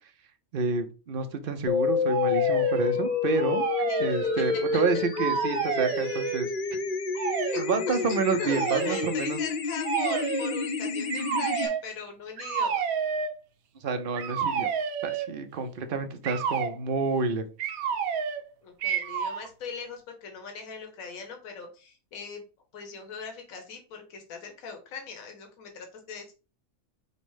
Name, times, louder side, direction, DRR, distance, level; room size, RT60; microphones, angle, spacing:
voice 1, 0.5-3.6 4.0-6.5 7.6-9.4 13.8-14.7 15.0-17.4, right 4 dB, 50° right, 7 dB, 0.7 m, -29 dB
sound 1, 1.7-11.7, left 6 dB, 60° left, 0.5 m, -29 dB
sound 2, 2.1-3.0 3.3-4.8 5.1-6.4 7.1-7.6 8.5-9.1 9.8-10.6 11.1-11.8 12.4-13.3 14.2-15.4 16.2-16.7 17.6-18.5 18.8-19.5, right 7 dB, 80° right, 1.1 m, -30 dB
voice 2, 3.8-4.4 4.7-4.8 5.7-5.8 7.5-8.0 8.3-12.8 18.6-22.4 22.7-26.3, left 5 dB, 75° left, 3 dB, 1.4 m, -40 dB
5.4 x 2.1 x 4.7 m, 0.33 s
omnidirectional pair, 1.5 m